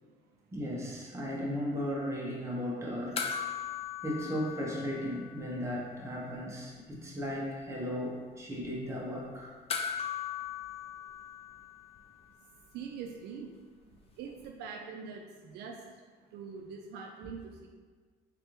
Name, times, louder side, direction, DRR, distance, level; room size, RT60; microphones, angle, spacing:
voice 1, 0.5-3.2 4.0-9.5, equal, 15° right, -4 dB, 1.0 m, -36 dB
sound 1, 3.2-5.8 6.1-6.2 9.7-12.3 14.4-14.5, left 7 dB, 35° left, 0.4 m, -38 dB
voice 2, 12.7-13.5 14.2-15.8 16.3-17.7, right 6 dB, 75° right, 2 dB, 0.4 m, -43 dB
3.7 x 3.4 x 2.9 m, 1.5 s
cardioid pair, 110°, 17 cm